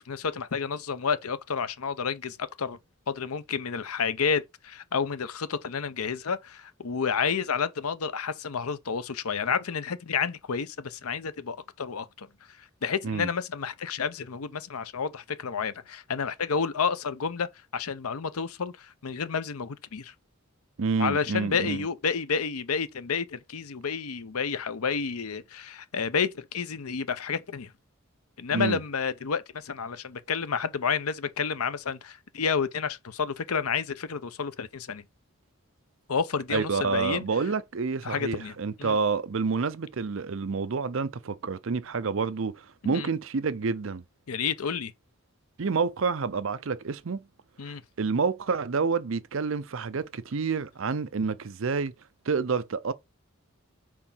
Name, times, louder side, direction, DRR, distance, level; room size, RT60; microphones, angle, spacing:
voice 1, 0.0-2.8 3.1-12.3 12.6-20.1 21.0-27.7 28.4-35.0 36.1-37.2 38.0-38.5 38.8-39.0 42.8-43.1 44.3-44.9 47.6-47.8, left 6 dB, 90° left, 0.7 m, -30 dB
voice 2, 20.8-21.8 28.5-28.8 36.5-44.0 45.6-47.3 47.6-51.9 52.3-52.9, right 5 dB, 65° right, 0.6 m, -28 dB
4.6 x 4.4 x 5.6 m
head